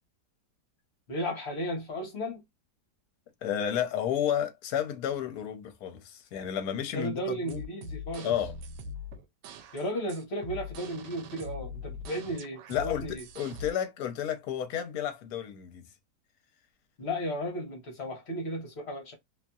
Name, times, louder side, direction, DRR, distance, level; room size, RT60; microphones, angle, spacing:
voice 1, 1.1-2.4 6.9-8.3 9.7-13.2 17.0-19.1, equal, 45° left, 1.1 m, -34 dB
voice 2, 3.4-7.6 8.2-8.5 12.7-15.9, left 9 dB, 70° left, 1.1 m, -32 dB
sound 1, 7.5-13.7, left 2 dB, 90° right, 1.2 m, -42 dB
2.9 x 2.5 x 2.3 m
omnidirectional pair, 1.8 m